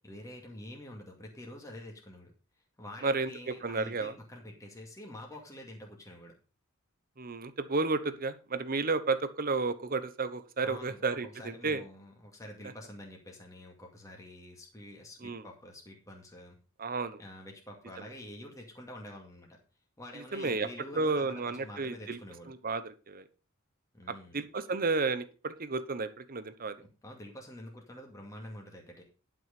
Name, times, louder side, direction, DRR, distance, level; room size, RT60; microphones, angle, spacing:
voice 1, 0.0-2.3 2.8-6.4 10.6-16.6 17.2-19.6 20.0-22.5 23.9-24.4 26.8-29.0, left 1 dB, 15° left, 0 dB, 2.2 m, -47 dB
voice 2, 3.0-4.1 7.2-11.8 15.2-15.4 16.8-17.2 20.3-20.7 20.9-22.2 22.5-23.2 24.3-26.8, right 3 dB, 45° right, 12 dB, 1.0 m, -32 dB
11.0 x 6.3 x 5.3 m, 0.35 s
head